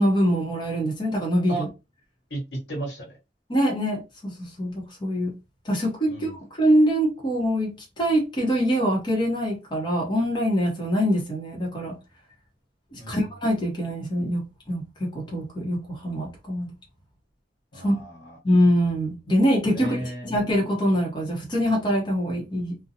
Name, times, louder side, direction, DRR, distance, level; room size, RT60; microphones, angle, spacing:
voice 1, 0.0-1.7 3.5-5.3 5.6-12.0 12.9-16.7 17.8-17.9 18.4-22.7, equal, 25° left, 0.9 m, -24 dB
voice 2, 2.3-3.2 6.1-6.4 13.0-13.2 17.7-18.4 19.7-20.3, right 2 dB, 85° left, 1.2 m, -34 dB
2.5 x 2.1 x 2.8 m
head